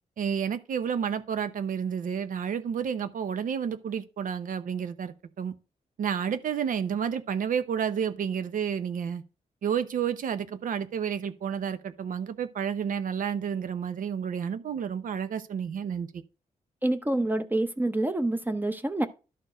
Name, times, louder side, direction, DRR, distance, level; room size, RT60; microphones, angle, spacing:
voice 1, 0.2-5.5 6.0-9.2 9.6-16.2, right 7 dB, 75° right, 0.8 m, -30 dB
voice 2, 16.8-19.1, right 1 dB, 15° right, 0.7 m, -27 dB
12.0 x 4.4 x 5.0 m
cardioid pair, 105°, 14 cm